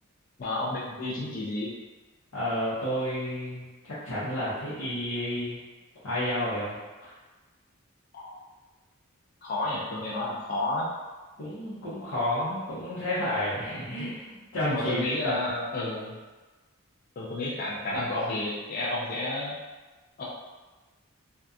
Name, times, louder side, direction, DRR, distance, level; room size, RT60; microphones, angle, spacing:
voice 1, 0.4-1.7 8.1-8.4 9.4-10.9 14.0-14.1 14.6-16.2 17.2-19.5 20.2-20.3, left 2 dB, 40° left, -5 dB, 0.3 m, -31 dB
voice 2, 2.3-5.6 6.0-6.8 7.0-7.1 11.4-15.3, left 1 dB, 85° left, -12 dB, 0.7 m, -31 dB
2.7 x 2.2 x 2.3 m, 1.2 s
head